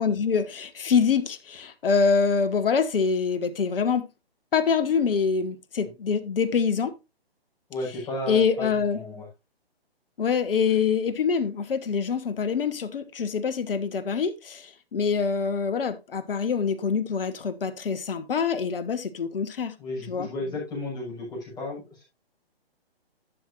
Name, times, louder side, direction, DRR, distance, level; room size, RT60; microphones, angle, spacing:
voice 1, 0.0-4.0 4.5-6.9 8.3-9.0 10.2-19.7 20.1-20.3, left 6 dB, 65° left, 1.3 m, -25 dB
voice 2, 7.7-9.3 19.8-22.0, left 2 dB, 15° left, 5.9 m, -34 dB
11.5 x 7.6 x 2.7 m
hypercardioid pair, 145°, 31 cm